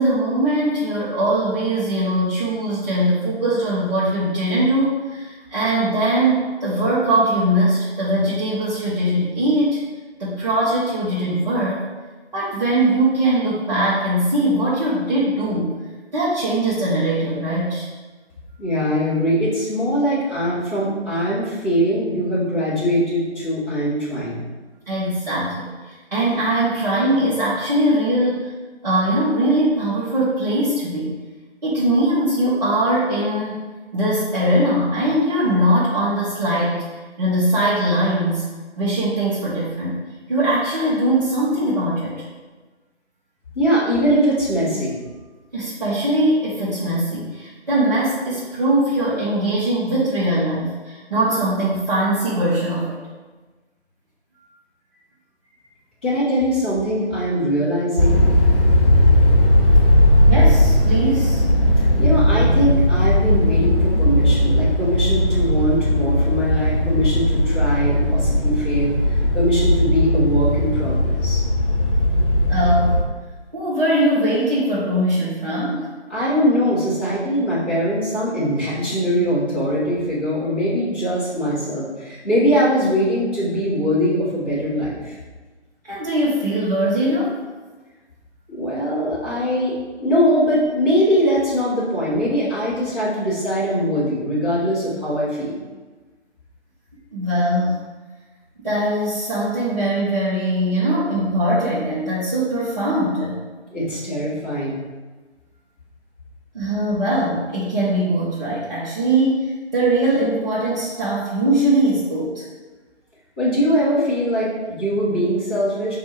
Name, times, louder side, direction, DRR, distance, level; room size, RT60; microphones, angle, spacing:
voice 1, 0.0-9.8 10.2-11.8 12.3-15.7 16.1-17.9 24.9-28.5 28.8-31.2 31.6-33.6 33.9-36.8 37.2-38.4 38.8-40.0 40.3-42.1 45.5-53.0 60.3-61.4 72.5-73.1 73.5-75.9 85.8-87.3 97.1-97.9 98.6-103.4 106.5-112.4, right 1 dB, 40° right, -9 dB, 0.9 m, -21 dB
voice 2, 18.6-24.4 43.5-45.0 56.0-58.2 62.0-71.4 76.1-85.1 88.5-95.5 103.7-104.8 113.4-115.9, equal, 10° left, -13 dB, 0.8 m, -21 dB
sound 1, 58.0-73.0, left 1 dB, 50° left, 0.9 m, -17 dB
4.0 x 2.6 x 4.6 m, 1.3 s
figure-of-eight pair, 155°, 34 cm